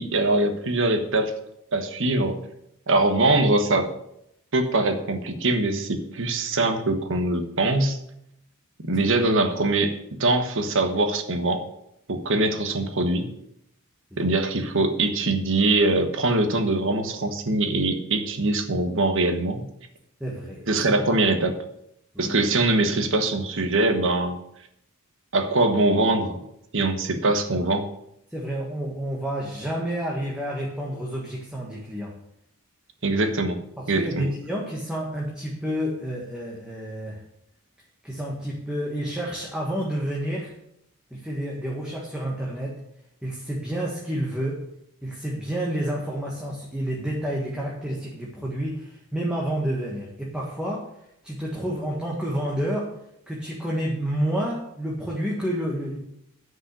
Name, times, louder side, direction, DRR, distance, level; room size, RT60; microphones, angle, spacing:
voice 1, 0.0-1.3 1.7-2.4 2.9-3.9 4.5-8.0 8.9-9.9 10.2-11.6 12.1-13.3 14.2-19.6 20.7-21.5 22.2-24.4 25.3-26.4 26.7-27.9 33.0-33.6 33.9-34.3, right 2 dB, 60° right, 7 dB, 1.3 m, -22 dB
voice 2, 20.2-20.6 22.1-22.4 28.3-32.1 33.8-37.2 38.0-40.5 41.1-42.8 43.2-44.6 45.0-50.9 51.2-52.9 53.3-56.0, right 1 dB, 5° right, -4 dB, 1.5 m, -29 dB
10.0 x 5.4 x 8.2 m, 0.79 s
head